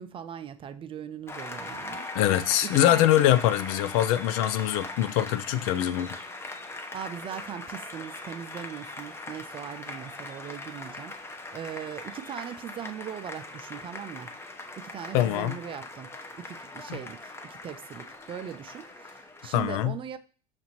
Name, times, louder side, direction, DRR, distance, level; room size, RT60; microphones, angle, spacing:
voice 1, 0.0-2.1 2.6-3.1 6.9-14.3 14.8-20.2, right 9 dB, 25° right, 0.4 m, -40 dB
Applause, 1.3-19.5, left 2 dB, 15° left, 0.7 m, -40 dB
voice 2, 2.1-6.2 15.1-15.6 19.5-20.0, left 12 dB, 60° left, 0.4 m, -23 dB
5.8 x 2.5 x 2.9 m
hypercardioid pair, 90°, 19 cm